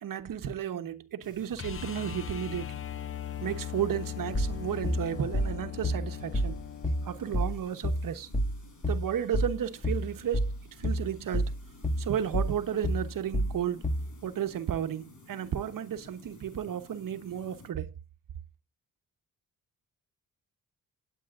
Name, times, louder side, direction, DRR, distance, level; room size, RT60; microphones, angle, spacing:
voice 1, 0.0-2.7 3.4-6.6 7.0-8.3 8.9-10.5 10.8-11.5 12.0-13.8 14.2-17.9, right 9 dB, 70° right, 1.1 m, -33 dB
sound 1, 1.2-17.7, left 3 dB, 60° left, 4.7 m, -54 dB
sound 2, 1.6-7.5 10.0-10.1, left 10 dB, 40° left, 0.6 m, -39 dB
sound 3, 4.3-14.1, equal, 25° left, 1.5 m, -29 dB
19.0 x 8.7 x 2.5 m
cardioid pair, 65°, 34 cm